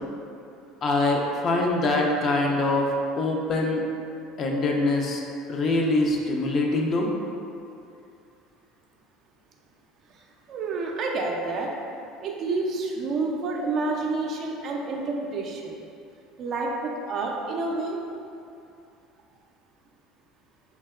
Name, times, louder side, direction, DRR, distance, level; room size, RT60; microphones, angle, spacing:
voice 1, 0.8-2.9 3.2-3.8 4.4-5.2 5.5-7.1, left 2 dB, 45° left, 0 dB, 0.4 m, -24 dB
voice 2, 10.5-11.7 12.2-15.8 16.4-18.0, right 3 dB, 55° right, 0 dB, 0.4 m, -29 dB
3.2 x 2.7 x 2.3 m, 2.6 s
hypercardioid pair, 85°, 0 cm